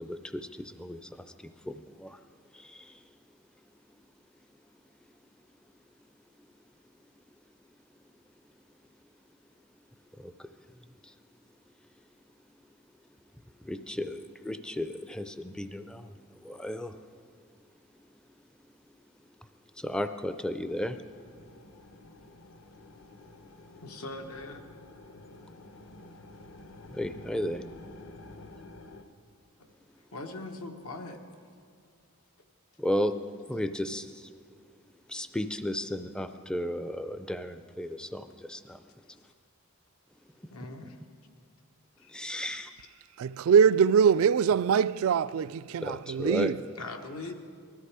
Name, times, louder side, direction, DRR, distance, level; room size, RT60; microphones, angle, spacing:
voice 1, 0.0-2.2 2.5-3.0 10.2-10.5 11.0-11.1 13.6-17.0 19.8-21.0 26.9-27.6 32.8-33.1 33.5-34.3 35.1-38.8 42.1-42.7 45.8-46.6, left 1 dB, 5° left, 0.4 m, -34 dB
sound 1, 20.7-29.0, left 2 dB, 60° left, 0.9 m, -50 dB
voice 2, 23.8-24.7 30.1-31.2 40.5-41.0 42.0-42.9 46.8-47.3, left 2 dB, 85° left, 1.3 m, -41 dB
voice 3, 43.2-46.6, right 7 dB, 75° right, 0.3 m, -23 dB
19.5 x 13.5 x 4.8 m
head